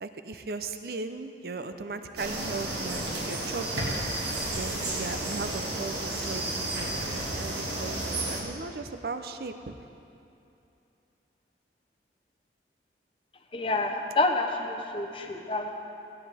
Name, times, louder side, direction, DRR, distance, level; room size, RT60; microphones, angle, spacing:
voice 1, 0.0-4.0 4.5-9.7, right 3 dB, 55° right, 8 dB, 0.6 m, -37 dB
sound 1, 2.2-8.4, right 1 dB, 75° right, 2.0 m, -32 dB
voice 2, 13.5-15.7, left 2 dB, 30° left, 4 dB, 0.7 m, -28 dB
16.5 x 9.4 x 3.5 m, 2.7 s
head